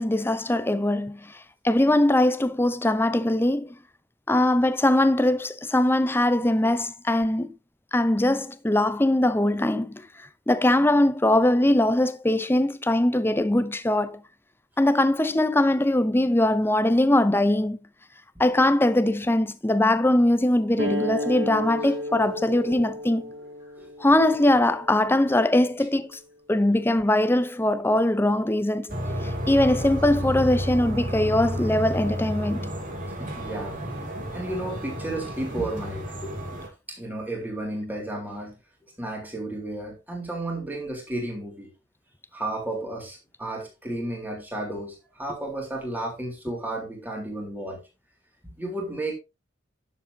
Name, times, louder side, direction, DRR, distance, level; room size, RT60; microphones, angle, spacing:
voice 1, 0.0-1.3 1.6-3.7 4.3-7.5 7.9-10.0 10.5-14.2 14.8-17.8 18.4-23.3 24.0-26.2 26.5-29.0 29.2-32.7, left 1 dB, 10° left, 0.7 m, -21 dB
sound 1, 20.8-25.9, left 1 dB, 85° right, 4.7 m, -33 dB
sound 2, 28.9-36.7, equal, 45° right, 2.6 m, -31 dB
voice 2, 33.2-36.3 36.9-38.6 38.8-41.7 42.3-47.8 48.4-49.2, right 1 dB, 10° right, 3.7 m, -33 dB
11.0 x 7.6 x 2.8 m
head